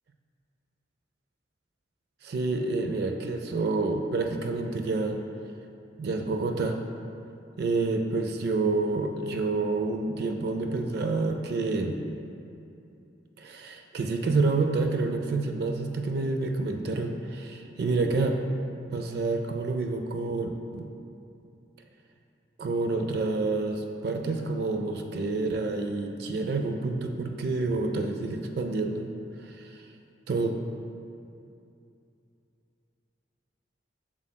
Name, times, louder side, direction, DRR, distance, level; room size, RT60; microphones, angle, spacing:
voice 1, 2.2-5.2 6.0-6.8 7.6-12.0 13.4-18.4 18.9-20.9 22.6-29.1 29.5-29.8 30.3-30.5, right 3 dB, 60° right, 4 dB, 0.4 m, -28 dB
7.1 x 6.3 x 2.2 m, 2.6 s
head